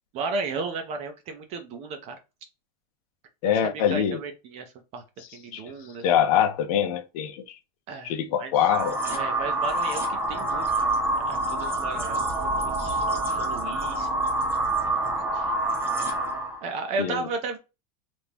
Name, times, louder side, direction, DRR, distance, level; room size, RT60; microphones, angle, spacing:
voice 1, 0.1-2.2 3.4-5.0 5.3-6.1 7.9-8.5 9.1-14.1 14.8-15.5 16.6-17.6, right 4 dB, 30° right, 0.5 m, -35 dB
voice 2, 3.4-4.2 5.5-5.6 6.0-7.4 8.0-9.0 17.0-17.2, left 9 dB, 60° left, 0.7 m, -24 dB
sound 1, 8.5-16.6, right 2 dB, 10° right, 0.8 m, -27 dB
3.5 x 2.5 x 2.9 m
supercardioid pair, 170°, 21 cm